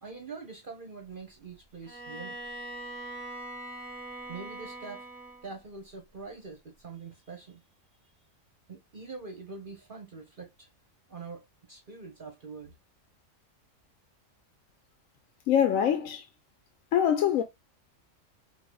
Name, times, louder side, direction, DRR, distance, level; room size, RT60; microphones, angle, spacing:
voice 1, 0.0-2.4 4.3-5.1 5.4-7.6 8.7-10.7 11.1-12.7, right 4 dB, 40° right, 1.1 m, -44 dB
Bowed string instrument, 1.8-5.6, right 1 dB, 20° left, 2.8 m, -42 dB
voice 2, 15.5-16.3 16.9-17.4, left 9 dB, 85° left, 1.0 m, -24 dB
4.8 x 2.7 x 2.2 m
omnidirectional pair, 1.4 m